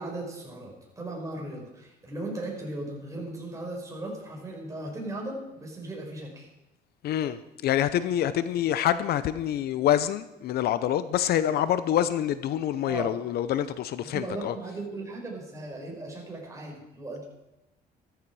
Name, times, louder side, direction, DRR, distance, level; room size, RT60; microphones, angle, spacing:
voice 1, 0.0-6.5 12.9-13.2 14.0-17.2, right 2 dB, 20° right, 5.6 m, -37 dB
voice 2, 7.0-14.6, left 11 dB, 65° left, 0.8 m, -26 dB
15.0 x 14.0 x 4.8 m
cardioid pair, 110°, 17 cm